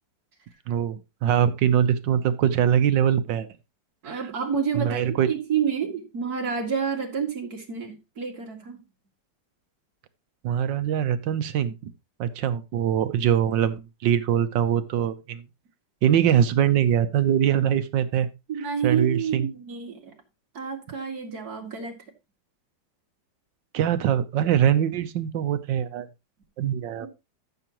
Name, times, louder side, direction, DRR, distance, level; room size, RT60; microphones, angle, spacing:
voice 1, 0.7-3.5 4.1-4.2 4.7-5.3 10.4-11.9 12.2-15.4 16.0-18.3 18.8-19.5 23.7-26.1 26.6-27.1, right 9 dB, 75° right, 12 dB, 1.4 m, -23 dB
voice 2, 4.0-8.8 18.5-20.1 20.5-22.0 27.0-27.1, right 7 dB, 50° right, 2 dB, 2.6 m, -29 dB
13.5 x 6.9 x 2.9 m, 0.25 s
omnidirectional pair, 2.1 m